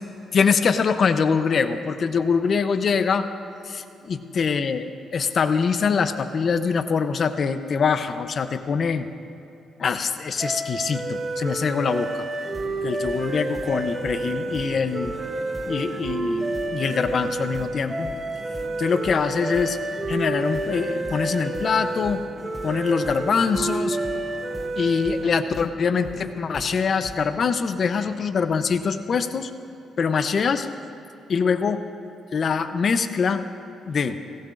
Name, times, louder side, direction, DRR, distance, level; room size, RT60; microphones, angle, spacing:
voice 1, 0.3-3.3 3.7-3.8 4.1-4.9 5.1-9.1 9.8-12.3 12.8-15.1 15.7-18.1 18.8-19.8 20.1-22.2 22.6-24.0 24.8-29.5 30.0-30.7 31.3-31.8 32.3-33.4 33.9-34.2, left 5 dB, 50° left, 10 dB, 0.7 m, -23 dB
sound 1, 10.4-25.5, right 2 dB, 30° right, 1.1 m, -30 dB
sound 2, 12.5-27.5, equal, 5° right, 0.7 m, -40 dB
18.0 x 17.0 x 2.6 m, 2.8 s
cardioid pair, 90°, 0 cm